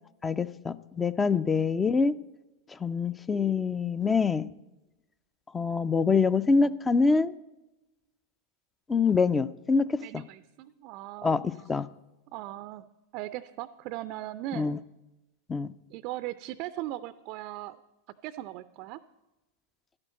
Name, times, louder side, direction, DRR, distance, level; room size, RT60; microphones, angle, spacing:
voice 1, 0.2-2.1 2.8-4.5 5.5-7.3 8.9-10.0 11.2-11.9 14.5-14.8 15.5-15.7, left 4 dB, 15° left, 16 dB, 0.5 m, -25 dB
voice 2, 10.0-11.4 12.3-12.8 13.1-14.8 15.9-17.8 18.2-19.0, right 15 dB, 45° right, 14 dB, 0.5 m, -38 dB
12.0 x 9.7 x 8.4 m, 1.0 s
figure-of-eight pair, 90°, 0 cm